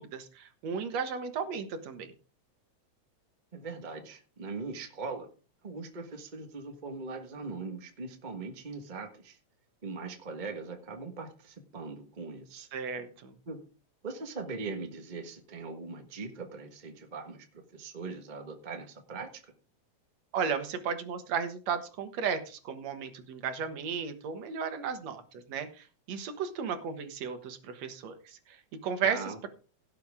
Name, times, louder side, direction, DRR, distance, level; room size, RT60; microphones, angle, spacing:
voice 1, 0.0-2.1 12.7-13.3 20.3-28.2 28.5-28.6 28.8-29.5, right 6 dB, 65° right, 8 dB, 2.5 m, -34 dB
voice 2, 3.5-5.3 5.6-9.4 9.8-12.7 13.5-13.6 14.0-19.5 29.0-29.5, right 4 dB, 35° right, 4 dB, 0.7 m, -41 dB
17.0 x 7.9 x 3.5 m, 0.36 s
omnidirectional pair, 3.3 m